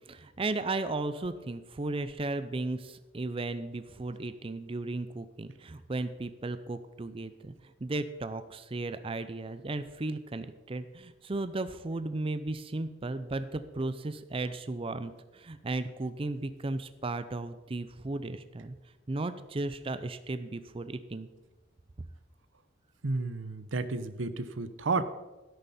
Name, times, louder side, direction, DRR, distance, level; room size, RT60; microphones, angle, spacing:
voice 1, 0.1-18.8 19.1-21.3, right 2 dB, 30° right, 12 dB, 0.5 m, -35 dB
voice 2, 23.0-25.1, right 3 dB, 80° right, 12 dB, 0.8 m, -31 dB
12.5 x 11.0 x 4.2 m, 1.1 s
head